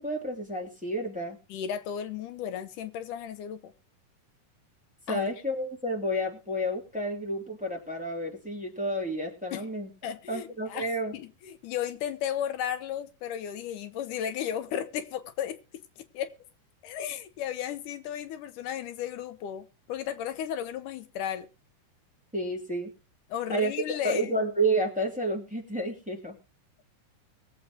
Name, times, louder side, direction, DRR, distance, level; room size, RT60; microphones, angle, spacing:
voice 1, 0.0-1.4 5.1-9.9 10.3-11.2 22.3-22.9 23.5-23.7 24.0-26.3, right 1 dB, 5° right, 2.5 m, -30 dB
voice 2, 1.5-3.7 5.1-5.3 9.5-9.6 10.0-10.9 11.1-15.8 16.1-16.3 16.8-21.5 23.3-24.3, left 9 dB, 80° left, 2.4 m, -34 dB
22.0 x 7.8 x 2.9 m
omnidirectional pair, 3.7 m